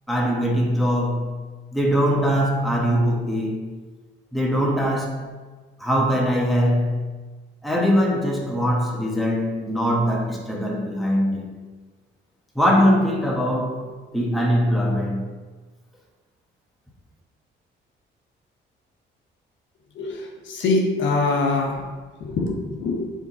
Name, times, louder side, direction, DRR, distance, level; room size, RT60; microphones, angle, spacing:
voice 1, 0.1-1.4 1.7-3.7 4.3-5.4 5.8-7.1 7.6-11.7 12.5-13.9 14.1-15.3, equal, ahead, 1.3 m, -22 dB
voice 2, 20.0-21.8 22.2-23.0, left 3 dB, 70° left, 1.1 m, -23 dB
7.0 x 3.6 x 4.2 m
cardioid pair, 90°, 20 cm